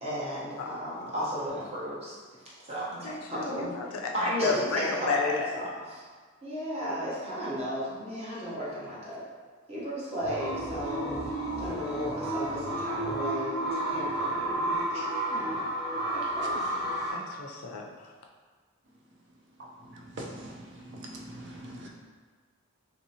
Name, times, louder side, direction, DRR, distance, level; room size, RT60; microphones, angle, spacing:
voice 1, 0.0-2.1 2.7-3.7 4.1-6.0 6.4-9.2 9.7-11.1 11.6-15.6 16.1-16.9, equal, 30° right, -8 dB, 0.8 m, -34 dB
voice 2, 3.0-5.5 17.1-17.9, left 4 dB, 85° left, 1 dB, 0.4 m, -32 dB
sound 1, 10.2-17.1, right 1 dB, ahead, 0.9 m, -31 dB
voice 3, 20.1-21.9, right 1 dB, 55° right, -1 dB, 0.4 m, -42 dB
3.1 x 2.7 x 2.8 m, 1.5 s
head